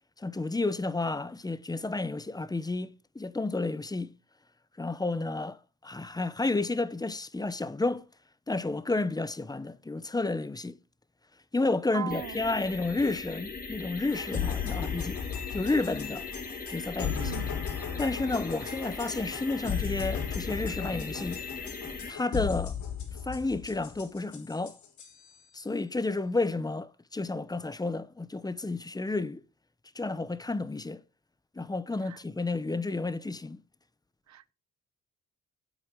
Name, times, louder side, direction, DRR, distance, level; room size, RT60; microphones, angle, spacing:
voice 1, 0.2-2.9 3.1-4.1 4.8-5.6 5.8-8.0 8.5-10.8 11.5-15.2 15.5-16.3 16.7-17.4 18.0-21.4 22.1-22.7 23.3-24.8 25.5-29.4 29.9-31.0 31.6-33.6, left 3 dB, 15° left, 0.9 m, -31 dB
voice 2, 11.9-12.4 17.2-17.5 32.0-32.2 34.3-34.5, right 11 dB, 65° right, 0.9 m, -38 dB
sound 1, 12.1-22.1, left 4 dB, 30° left, 2.6 m, -40 dB
sound 2, 14.1-25.4, left 8 dB, 70° left, 3.4 m, -36 dB
8.8 x 8.3 x 5.2 m
cardioid pair, 90°, 30 cm